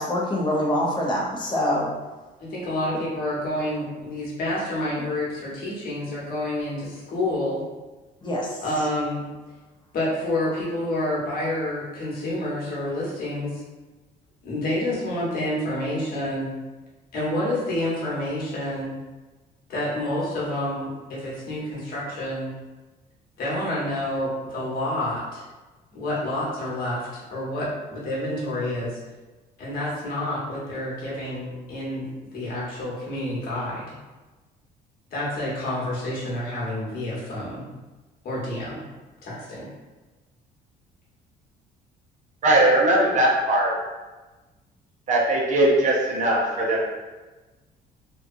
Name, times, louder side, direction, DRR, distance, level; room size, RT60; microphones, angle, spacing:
voice 1, 0.0-1.9 8.2-8.6, left 1 dB, 25° left, -2 dB, 0.7 m, -25 dB
voice 2, 2.4-7.6 8.6-9.2 9.9-13.6 14.4-16.5 17.1-18.9 19.7-22.5 23.4-25.4 25.9-29.0 29.6-32.1 32.3-33.9 35.1-37.7 38.2-38.8 39.2-39.7, left 1 dB, 60° left, -6 dB, 1.1 m, -28 dB
voice 3, 42.4-43.7 45.1-46.8, right 1 dB, 45° right, -2 dB, 0.6 m, -20 dB
2.8 x 2.3 x 2.5 m, 1.2 s
cardioid pair, 110°, 17 cm